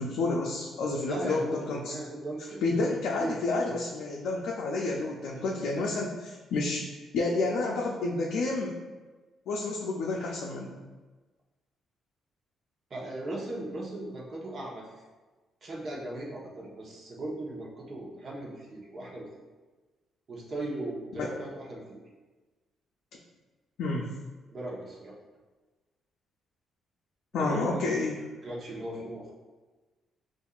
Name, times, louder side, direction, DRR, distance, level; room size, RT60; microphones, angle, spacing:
voice 1, 0.0-2.0 2.6-8.7 9.5-10.8 21.1-21.3 23.8-24.1 27.3-28.2, left 3 dB, 80° left, -3 dB, 0.4 m, -30 dB
voice 2, 1.1-2.9 3.2-3.3 3.7-3.8 12.9-14.9 15.6-19.3 20.3-22.0 24.5-25.2 27.3-29.3, right 1 dB, 45° right, -3 dB, 0.9 m, -38 dB
5.2 x 2.5 x 2.4 m, 1.3 s
cardioid pair, 90°, 0 cm